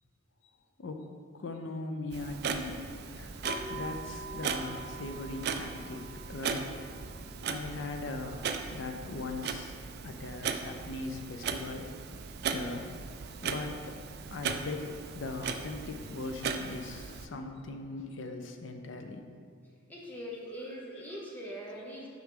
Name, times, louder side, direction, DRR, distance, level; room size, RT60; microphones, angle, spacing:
voice 1, 1.4-2.8 3.1-6.0 6.3-6.7 7.5-9.8 10.0-11.9 12.4-12.9 13.4-14.0 14.3-19.3, left 2 dB, 60° left, 4 dB, 0.5 m, -39 dB
Clock, 2.1-17.3, right 6 dB, 50° right, 0.3 m, -38 dB
sound 1, 3.4-10.4, right 1 dB, 35° left, 1.3 m, -46 dB
voice 2, 19.9-22.1, equal, 10° left, -5 dB, 0.8 m, -42 dB
5.7 x 5.3 x 3.8 m, 2.2 s
head